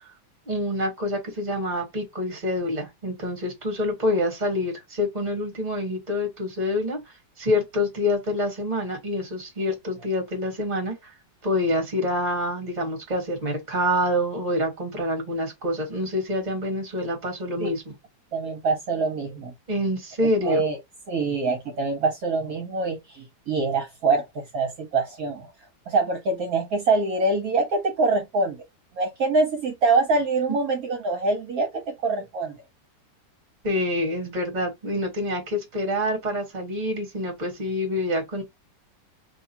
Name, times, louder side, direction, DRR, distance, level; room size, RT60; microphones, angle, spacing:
voice 1, 0.5-7.0 7.4-10.9 11.4-17.9 19.7-20.6 33.6-38.4, left 1 dB, 25° right, 1.3 m, -26 dB
voice 2, 18.3-19.5 20.4-20.8 21.1-25.5 25.9-28.6 29.0-32.6, right 3 dB, 60° right, 1.2 m, -24 dB
2.9 x 2.3 x 4.2 m
omnidirectional pair, 1.9 m